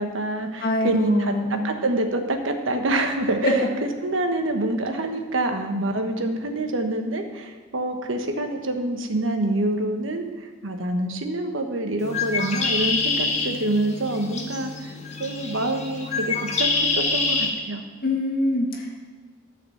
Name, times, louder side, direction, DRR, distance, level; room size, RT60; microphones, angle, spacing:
voice 1, 0.0-1.3 1.6-3.6 4.0-14.7 15.2-16.7 17.0-17.8, right 1 dB, 80° right, 5 dB, 1.2 m, -26 dB
voice 2, 0.6-1.6 3.4-3.7 18.0-19.0, left 1 dB, 50° left, -1 dB, 2.0 m, -23 dB
Bird, 12.0-17.5, left 3 dB, 35° left, 1.4 m, -26 dB
12.5 x 5.0 x 7.3 m, 1.5 s
head